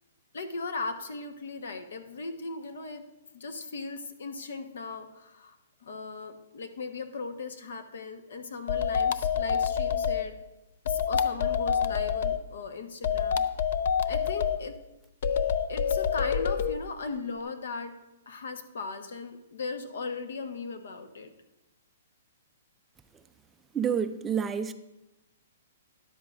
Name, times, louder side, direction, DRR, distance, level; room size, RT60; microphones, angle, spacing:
voice 1, 0.3-3.0 3.3-10.3 10.8-13.4 14.0-14.7 15.7-17.9 18.3-21.3, left 4 dB, 75° left, 1.1 m, -38 dB
sound 1, 8.7-10.2 10.9-12.4 13.0-14.6 15.2-16.7, left 7 dB, 55° left, 0.5 m, -27 dB
voice 2, 23.7-24.7, right 7 dB, 10° right, 0.3 m, -28 dB
13.0 x 11.0 x 2.5 m
hypercardioid pair, 165°, 0 cm